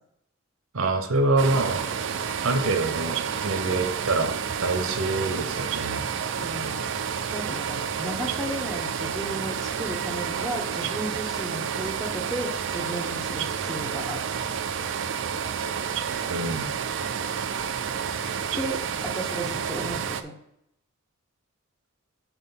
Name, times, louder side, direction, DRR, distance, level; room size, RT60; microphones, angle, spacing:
voice 1, 0.7-1.8 2.4-6.1 16.3-16.7, right 2 dB, 80° right, 8 dB, 0.9 m, -26 dB
sound 1, 1.4-20.2, right 7 dB, 65° right, 0.4 m, -30 dB
voice 2, 6.4-6.8 7.3-14.2 18.5-20.3, right 1 dB, ahead, 2 dB, 0.8 m, -34 dB
5.7 x 4.8 x 5.7 m, 0.79 s
head